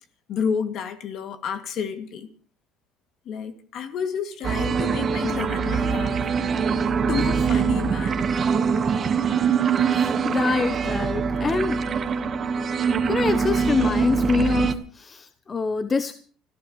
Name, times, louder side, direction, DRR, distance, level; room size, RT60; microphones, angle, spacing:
voice 1, 0.3-2.3 3.3-6.3 7.1-8.3, left 6 dB, 55° left, 2.4 m, -30 dB
sound 1, 4.4-14.7, right 6 dB, 35° right, 1.4 m, -23 dB
voice 2, 9.9-11.8 13.0-16.1, left 4 dB, 25° left, 0.9 m, -25 dB
29.5 x 14.5 x 3.2 m
cardioid pair, 110°, 0 cm